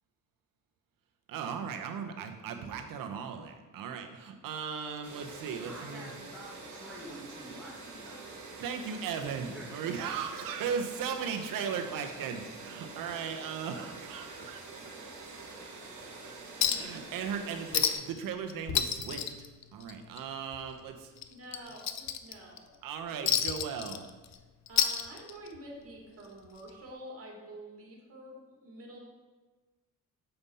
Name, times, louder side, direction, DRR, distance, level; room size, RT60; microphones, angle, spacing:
voice 1, 1.3-6.1 8.6-14.8 16.6-19.3 19.7-21.1 22.8-24.0, right 7 dB, 80° right, 6 dB, 0.9 m, -37 dB
sound 1, 5.0-17.9, right 3 dB, 60° right, 1.5 m, -46 dB
voice 2, 5.6-8.4 9.4-9.7, right 1 dB, ahead, -8 dB, 1.4 m, -48 dB
Chink clink, 16.6-17.0 17.3-17.4 17.7-18.2 18.5-20.2 20.5-20.7 21.2-22.6 23.3-24.4 24.7-25.6 26.7-26.8, left 9 dB, 55° left, 0.5 m, -30 dB
voice 3, 21.3-22.7 24.7-29.0, right 1 dB, 45° right, -1 dB, 2.1 m, -48 dB
6.9 x 5.4 x 4.2 m, 1.2 s
cardioid pair, 100°, 33 cm